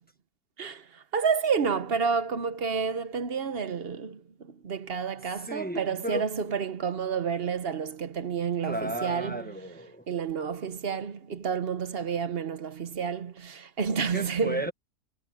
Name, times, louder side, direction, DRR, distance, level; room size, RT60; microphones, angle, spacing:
voice 1, 0.6-9.4 10.1-14.6, right 6 dB, 45° right, 1.0 m, -30 dB
voice 2, 5.4-6.3 8.6-10.1 14.1-14.7, right 1 dB, 5° left, 1.2 m, -34 dB
omnidirectional pair, 1.6 m